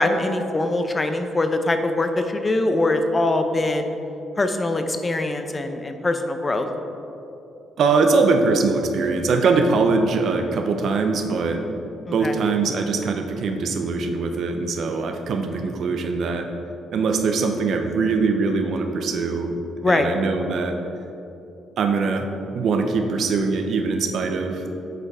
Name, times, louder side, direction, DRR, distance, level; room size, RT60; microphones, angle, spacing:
voice 1, 0.0-4.0 4.4-6.7 12.1-12.3 19.8-20.1, left 2 dB, 25° left, 7 dB, 0.6 m, -22 dB
voice 2, 7.8-11.8 12.1-16.5 16.9-20.8 21.8-22.3 22.5-24.6, right 4 dB, 65° right, 5 dB, 0.7 m, -22 dB
7.8 x 4.5 x 4.9 m, 2.8 s
cardioid pair, 90°, 0 cm